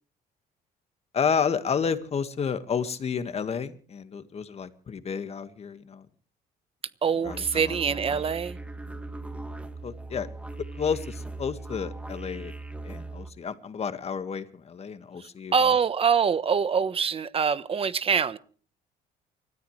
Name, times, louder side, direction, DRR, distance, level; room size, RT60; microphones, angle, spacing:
voice 1, 1.1-6.1 7.2-8.2 9.8-10.3 10.7-12.5 12.8-15.8, left 6 dB, 40° left, 1.9 m, -31 dB
voice 2, 7.0-8.6 15.5-18.4, right 6 dB, 35° right, 1.2 m, -24 dB
sound 1, 7.2-13.3, right 2 dB, 5° right, 1.6 m, -39 dB
29.5 x 14.0 x 3.3 m
cardioid pair, 110°, 17 cm